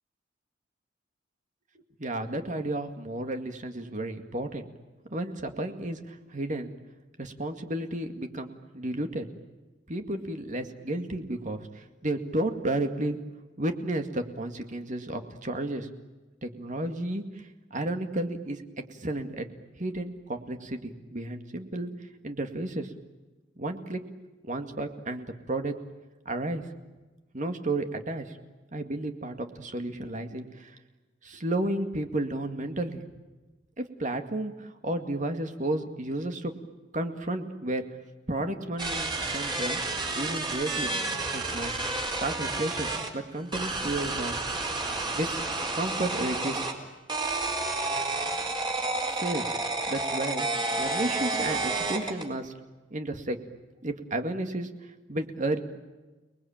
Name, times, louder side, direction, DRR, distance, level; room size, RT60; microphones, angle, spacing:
voice 1, 2.0-4.7 5.1-6.7 7.2-8.5 8.7-9.3 9.9-13.2 13.6-15.9 16.4-17.2 17.7-18.6 19.0-19.5 19.8-21.9 22.2-22.9 23.6-24.0 24.4-25.7 26.3-26.6 27.3-28.3 28.7-30.7 31.2-33.1 33.8-36.5 36.9-37.8 38.3-39.8 40.1-40.9 41.3-41.7 42.2-44.3 45.1-45.5 45.7-46.6 49.1-49.6 49.9-50.5 50.8-52.5 52.9-53.4 53.8-54.7 55.1-55.6, right 1 dB, 45° right, 6 dB, 2.2 m, -32 dB
sound 1, 38.8-43.1 43.5-46.7 47.1-52.3, right 3 dB, 25° right, 4.6 m, -30 dB
30.0 x 21.0 x 8.9 m, 1.2 s
head